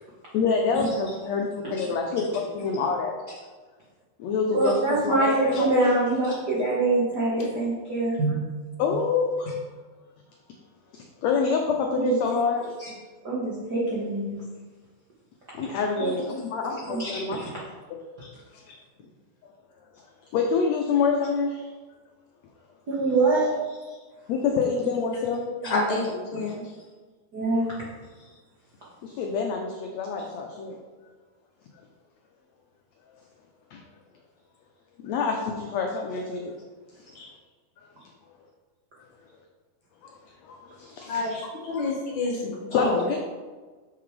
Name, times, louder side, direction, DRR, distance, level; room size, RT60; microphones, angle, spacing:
voice 1, 0.3-3.2 4.2-5.9 8.8-9.5 10.9-12.7 15.5-17.4 20.3-21.7 24.3-25.6 29.0-30.8 33.7-33.8 35.0-36.5 40.4-41.4 41.7-41.9 42.7-43.2, left 5 dB, 85° left, 1 dB, 1.5 m, -27 dB
voice 2, 4.5-8.3 11.9-12.4 12.8-12.9 13.2-14.4 15.6-15.7 16.0-16.2 16.8-17.5 18.2-18.3 22.9-23.8 27.3-27.6, right 2 dB, 80° right, -6 dB, 0.9 m, -25 dB
voice 3, 25.6-26.6 37.2-37.3 41.1-41.3 41.7-43.0, left 2 dB, 65° left, -3 dB, 2.5 m, -28 dB
6.7 x 5.9 x 3.2 m, 1.4 s
omnidirectional pair, 3.8 m